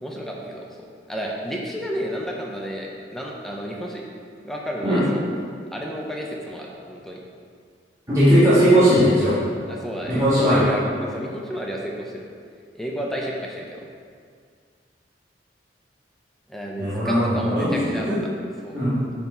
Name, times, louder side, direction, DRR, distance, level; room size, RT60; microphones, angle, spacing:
voice 1, 0.0-4.0 4.4-5.3 5.7-7.2 9.7-12.2 12.7-13.9 16.5-18.1 18.6-18.8, equal, ahead, -2 dB, 0.7 m, -31 dB
voice 2, 8.1-9.4 10.1-10.7 16.8-17.7 18.1-18.2 18.7-18.9, equal, 20° right, -13 dB, 1.8 m, -18 dB
9.1 x 3.4 x 5.5 m, 2.1 s
head